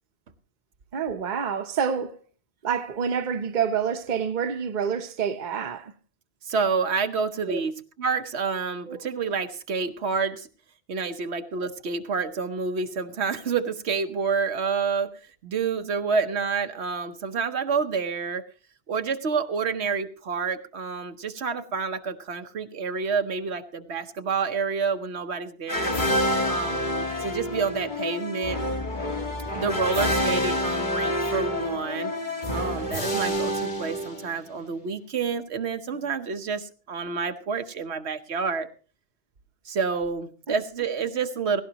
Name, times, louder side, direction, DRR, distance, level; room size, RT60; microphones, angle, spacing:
voice 1, 0.9-2.2 2.6-5.9 7.5-7.6 8.9-9.0 40.5-40.6, right 7 dB, 45° right, 1.0 m, -27 dB
voice 2, 6.5-7.7 8.0-10.5 10.9-15.1 15.4-18.4 18.9-25.9 26.4-28.6 29.5-32.1 32.5-38.7 39.6-41.6, right 5 dB, 85° right, 1.3 m, -28 dB
sound 1, 25.7-34.6, left 1 dB, 45° left, 1.8 m, -27 dB
17.0 x 16.5 x 2.9 m
omnidirectional pair, 1.1 m